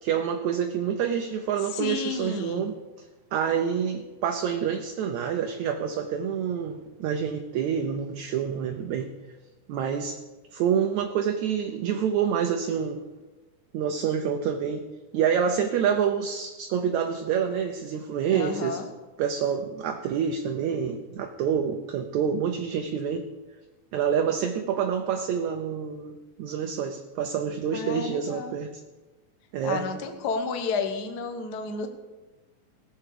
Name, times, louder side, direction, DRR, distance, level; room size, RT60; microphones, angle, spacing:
voice 1, 0.0-2.7 3.3-9.1 9.7-10.2 10.5-13.0 13.7-14.9 15.1-18.8 19.2-23.3 23.9-26.1 26.4-28.7 29.5-29.8, right 7 dB, 70° right, 5 dB, 1.9 m, -27 dB
voice 2, 1.7-2.7 18.3-18.9 27.7-28.6 29.6-31.9, left 4 dB, 80° left, 6 dB, 0.9 m, -31 dB
17.5 x 7.7 x 6.8 m, 1.2 s
omnidirectional pair, 3.8 m